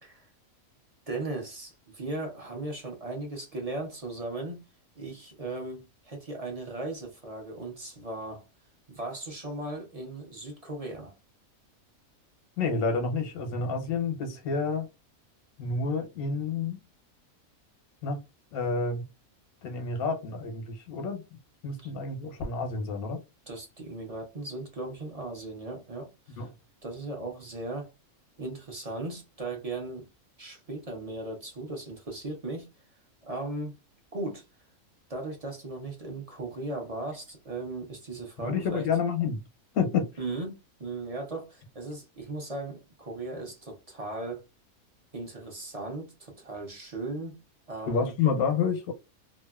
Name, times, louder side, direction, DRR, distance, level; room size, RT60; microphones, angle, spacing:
voice 1, 1.1-4.6 5.0-8.4 8.9-11.1 21.8-21.9 23.5-26.5 26.8-27.9 28.4-30.1 30.4-32.7 33.2-33.8 34.1-34.4 35.1-38.9 40.2-44.4 45.1-47.4 47.7-48.1, right 2 dB, 35° right, 0.6 m, -37 dB
voice 2, 12.6-14.9 15.6-16.8 18.0-18.2 18.5-19.0 19.6-21.2 21.6-23.2 26.4-26.5 38.4-39.4 39.7-40.1 47.9-48.9, left 5 dB, 90° left, 1.2 m, -29 dB
2.8 x 2.4 x 2.3 m
omnidirectional pair, 1.5 m